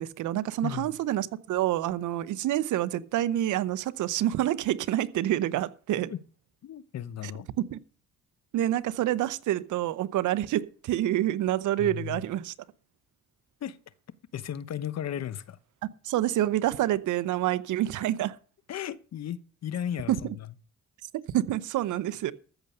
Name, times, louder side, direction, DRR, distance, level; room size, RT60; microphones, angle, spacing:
voice 1, 0.0-6.1 7.6-7.8 8.5-12.5 16.0-18.4 20.1-20.2 21.3-22.3, right 13 dB, 75° right, 0.8 m, -27 dB
voice 2, 0.6-1.0 6.1-6.2 6.6-7.5 11.8-12.2 13.6-13.8 14.3-15.6 18.7-20.5, left 10 dB, 60° left, 1.0 m, -35 dB
14.0 x 6.8 x 6.7 m
cardioid pair, 90°, 30 cm